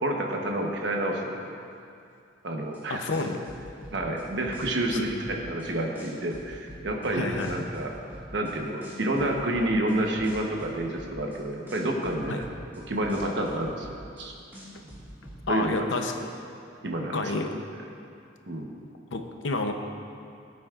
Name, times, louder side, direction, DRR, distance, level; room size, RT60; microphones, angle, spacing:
voice 1, 0.0-1.6 2.4-3.0 3.9-7.9 8.3-12.4 12.9-13.9 14.2-14.3 14.8-14.9 15.5-15.9 16.8-17.4 17.7-17.8 18.5-18.7, right 1 dB, 65° right, 0 dB, 1.1 m, -29 dB
sound 1, 2.7-2.8 3.1-5.7 5.9-8.5 8.8-11.4 11.7-14.2 14.5-15.4, equal, 10° right, 2.1 m, -45 dB
voice 2, 2.9-3.4 4.9-5.1 7.1-7.6 12.3-12.4 15.5-16.1 17.1-17.5 19.1-19.7, left 3 dB, 85° left, 5 dB, 0.8 m, -29 dB
16.0 x 8.3 x 2.5 m, 2.5 s
head